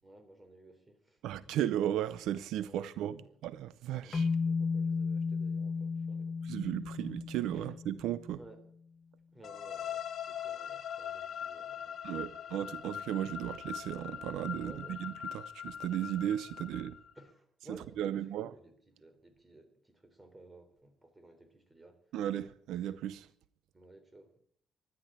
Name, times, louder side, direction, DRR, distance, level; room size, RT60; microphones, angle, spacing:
voice 1, 0.0-1.5 2.6-3.4 3.9-6.4 7.5-7.8 8.4-8.6 9.3-12.7 14.5-15.1 17.2-22.0 23.7-24.4, right 2 dB, 20° right, 3.5 m, -56 dB
voice 2, 1.2-4.3 6.4-8.4 12.0-17.0 17.7-18.5 22.1-23.3, right 11 dB, 90° right, 0.6 m, -35 dB
sound 1, 4.1-8.4, left 5 dB, 35° left, 0.7 m, -34 dB
sound 2, 9.4-17.2, left 9 dB, 60° left, 1.7 m, -42 dB
14.0 x 11.0 x 8.8 m
cardioid pair, 90°, 0 cm